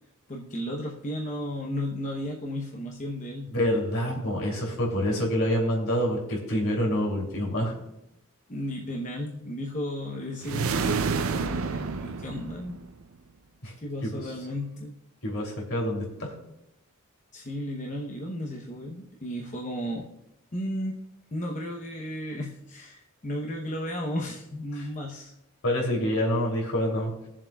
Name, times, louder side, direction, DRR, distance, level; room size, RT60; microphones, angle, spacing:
voice 1, 0.3-3.5 8.5-12.8 13.8-15.0 17.3-20.1 20.5-21.0 21.3-25.3, left 1 dB, 35° left, -1 dB, 0.9 m, -34 dB
voice 2, 3.5-7.7 13.6-13.7 14.0-14.1 15.2-16.3 25.6-27.1, equal, 70° left, -1 dB, 3.0 m, -27 dB
sound 1, 10.4-13.0, right 5 dB, 70° right, 0.5 m, -29 dB
22.0 x 7.4 x 2.3 m, 0.85 s
head